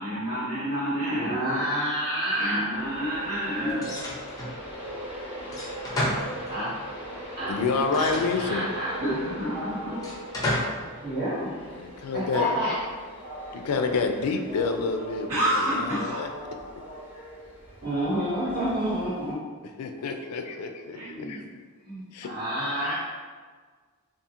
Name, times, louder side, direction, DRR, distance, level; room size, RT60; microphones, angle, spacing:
voice 1, 0.0-1.4 2.4-3.9 9.0-10.0 15.3-16.2 20.9-21.5, equal, 80° right, -10 dB, 1.3 m, -29 dB
voice 2, 1.0-2.7 6.0-6.2 6.5-6.7 7.4-7.6 7.9-8.9 11.0-11.5 12.1-12.8 17.8-19.4 21.8-23.0, equal, 45° right, -11 dB, 1.4 m, -29 dB
Train, 2.7-19.3, equal, 10° right, 1.2 m, -40 dB
sound 1, 3.8-4.6 5.5-6.8 7.9-8.9 10.0-10.9, left 1 dB, 15° left, 0.5 m, -31 dB
voice 3, 7.5-8.7 11.8-12.6 13.5-16.3 19.8-21.4 22.1-22.3, left 4 dB, 80° left, 5 dB, 0.3 m, -28 dB
2.7 x 2.5 x 2.5 m, 1.5 s
head